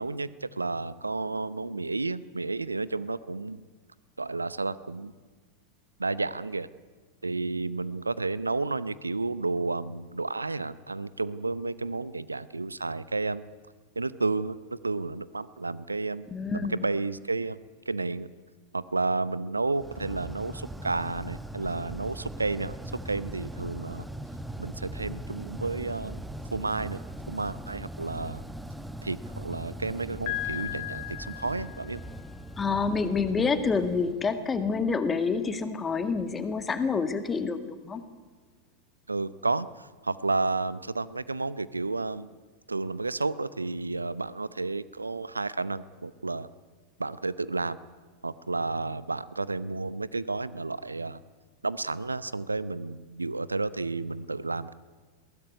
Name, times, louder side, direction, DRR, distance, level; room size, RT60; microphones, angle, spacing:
voice 1, 0.0-3.6 4.2-5.1 6.0-6.7 7.2-13.4 14.0-14.6 14.8-16.3 16.5-17.6 17.9-18.3 18.7-22.8 23.0-24.0 24.6-26.2 26.5-27.0 27.3-28.4 29.0-32.0 39.1-42.3 42.7-46.5 47.0-47.8 48.2-51.2 51.6-54.7, right 3 dB, 80° right, 17 dB, 0.8 m, -31 dB
voice 2, 16.3-16.8 32.6-38.0, left 4 dB, 15° left, 10 dB, 1.9 m, -28 dB
sound 1, 19.8-34.8, right 1 dB, 5° right, 1.1 m, -40 dB
Piano, 30.3-32.2, left 18 dB, 50° left, 2.5 m, -36 dB
21.5 x 17.0 x 9.7 m, 1.5 s
figure-of-eight pair, 90°, 0 cm